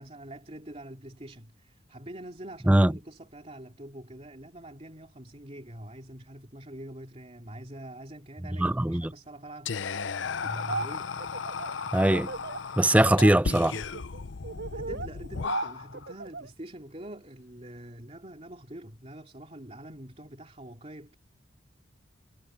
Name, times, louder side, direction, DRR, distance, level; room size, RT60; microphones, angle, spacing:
voice 1, 0.0-9.7 10.4-11.1 14.7-21.2, right 1 dB, 30° right, 3.1 m, -44 dB
voice 2, 8.6-9.1 11.9-12.3 12.8-13.8, right 1 dB, 5° right, 0.4 m, -21 dB
Whispering, 9.7-16.1, left 5 dB, 70° left, 0.7 m, -35 dB
Laughter, 10.4-10.9 11.2-12.6 12.9-13.3 13.6-16.5, right 3 dB, 60° right, 4.1 m, -36 dB
head